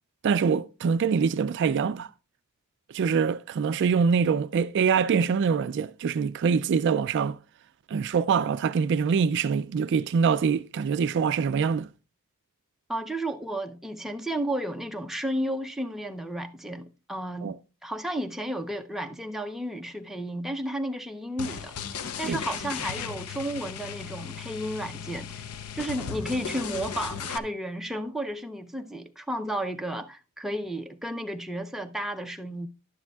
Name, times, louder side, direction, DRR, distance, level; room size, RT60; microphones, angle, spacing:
voice 1, 0.2-2.1 2.9-7.4 7.9-11.9 17.4-17.5 22.3-22.4, right 6 dB, 55° right, 0.3 m, -24 dB
voice 2, 12.9-17.5 17.8-25.4 25.7-32.7, right 1 dB, ahead, 0.5 m, -33 dB
sound 1, 21.4-27.4, left 7 dB, 80° left, 0.6 m, -36 dB
11.0 x 9.8 x 2.3 m
head